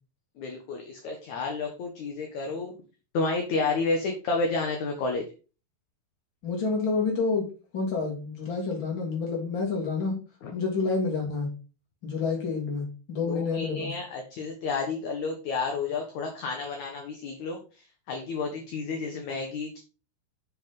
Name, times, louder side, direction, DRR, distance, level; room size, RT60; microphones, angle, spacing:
voice 1, 0.4-2.7 3.1-5.2 10.4-10.5 13.3-19.8, left 3 dB, 60° left, 3 dB, 2.4 m, -31 dB
voice 2, 6.4-7.5 7.7-10.2 10.5-11.5 12.0-13.9, left 4 dB, 35° left, 0 dB, 3.5 m, -28 dB
7.8 x 6.5 x 5.4 m, 0.34 s
omnidirectional pair, 4.4 m